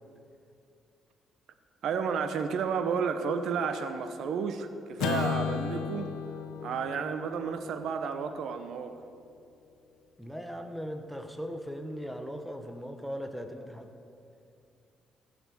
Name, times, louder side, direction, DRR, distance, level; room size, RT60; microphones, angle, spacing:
voice 1, 1.8-6.1 6.6-9.0, right 6 dB, 70° right, 9 dB, 0.8 m, -32 dB
Acoustic guitar / Strum, 5.0-9.4, left 8 dB, 90° left, 1.1 m, -36 dB
voice 2, 10.2-13.9, equal, ahead, 5 dB, 1.2 m, -38 dB
15.0 x 6.9 x 8.4 m, 2.5 s
cardioid pair, 90°, 0 cm